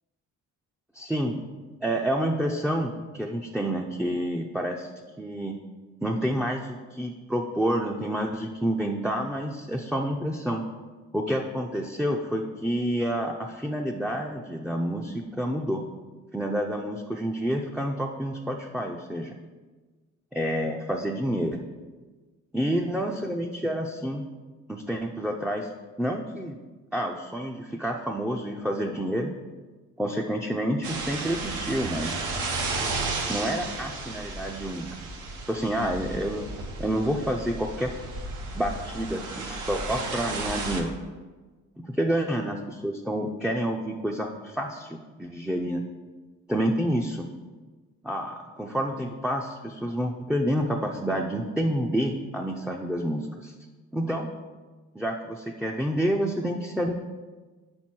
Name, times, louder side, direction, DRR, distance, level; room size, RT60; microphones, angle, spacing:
voice 1, 0.9-1.4 1.8-4.9 5.2-5.5 6.0-10.6 11.1-15.8 16.3-19.3 20.3-21.7 22.5-24.2 24.7-25.7 26.0-26.6 26.9-29.3 30.0-32.2 33.3-34.9 35.5-36.5 36.8-37.9 38.5-40.9 41.9-45.8 46.5-47.3 48.0-53.5 53.9-54.3 55.0-57.0, equal, 5° right, 1 dB, 0.4 m, -28 dB
sound 1, 30.8-40.8, right 3 dB, 90° right, 1.0 m, -33 dB
5.2 x 4.4 x 6.1 m, 1.3 s
cardioid pair, 90°, 30 cm